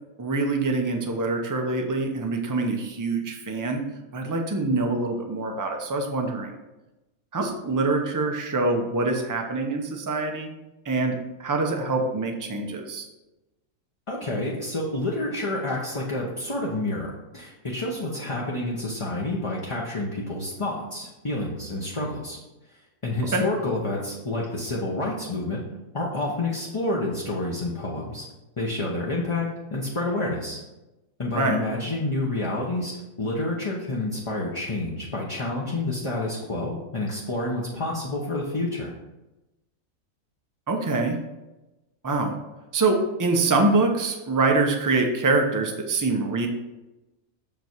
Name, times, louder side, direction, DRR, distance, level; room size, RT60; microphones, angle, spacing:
voice 1, 0.2-3.8 4.1-6.6 7.3-10.5 10.8-13.1 23.3-23.4 31.3-31.6 40.7-41.2 42.0-42.4 42.7-46.5, right 3 dB, 20° right, 3 dB, 0.6 m, -25 dB
voice 2, 14.1-17.1 17.3-22.4 23.0-25.6 25.9-28.3 28.6-30.6 31.2-32.9 33.2-38.9, left 2 dB, 25° left, -4 dB, 0.8 m, -29 dB
6.9 x 5.1 x 4.6 m, 1.0 s
omnidirectional pair, 1.5 m